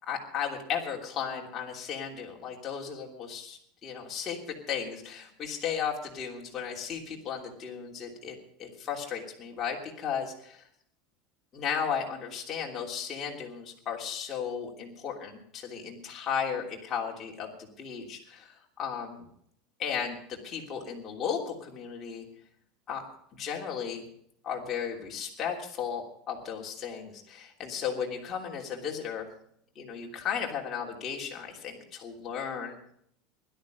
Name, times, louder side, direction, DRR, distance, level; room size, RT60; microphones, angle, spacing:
voice 1, 0.0-10.6 11.5-19.2 19.8-22.2 22.9-23.0 23.3-24.0 24.4-29.3 29.7-32.8, left 7 dB, 25° left, -1 dB, 3.0 m, -35 dB
16.5 x 12.5 x 5.3 m, 0.66 s
supercardioid pair, 165°, 0 cm